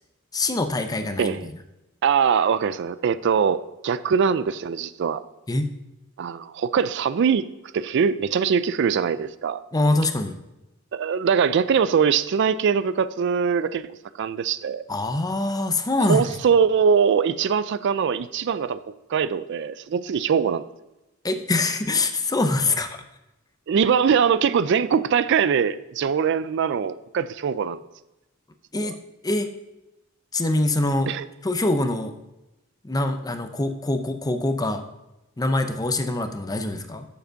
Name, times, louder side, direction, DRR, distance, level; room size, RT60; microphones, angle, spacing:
voice 1, 0.3-1.5 5.5-5.7 9.7-10.4 14.9-16.3 21.2-23.0 28.7-29.0 29.2-29.5 30.3-31.1 31.4-32.1 32.8-34.8 35.4-37.1, left 2 dB, 20° left, 7 dB, 0.6 m, -24 dB
voice 2, 1.2-1.5 2.0-5.2 6.2-7.5 7.7-9.6 10.9-13.9 14.2-14.8 16.0-20.7 23.7-27.8 28.8-28.9 31.1-31.3, right 6 dB, 60° right, 15 dB, 0.4 m, -22 dB
6.9 x 5.2 x 6.3 m, 0.95 s
head